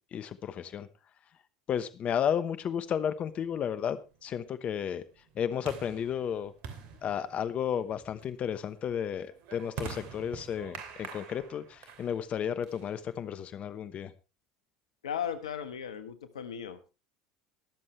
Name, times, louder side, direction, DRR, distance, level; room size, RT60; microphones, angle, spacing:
voice 1, 0.1-0.9 1.7-5.0 5.4-6.5 7.0-14.1, left 8 dB, 40° left, 12 dB, 1.1 m, -33 dB
sound 1, 3.0-13.3, right 6 dB, 60° right, 2.8 m, -47 dB
voice 2, 15.0-16.9, left 8 dB, 85° left, 11 dB, 1.4 m, -36 dB
22.5 x 7.6 x 3.3 m, 0.30 s
hypercardioid pair, 80°, 3 cm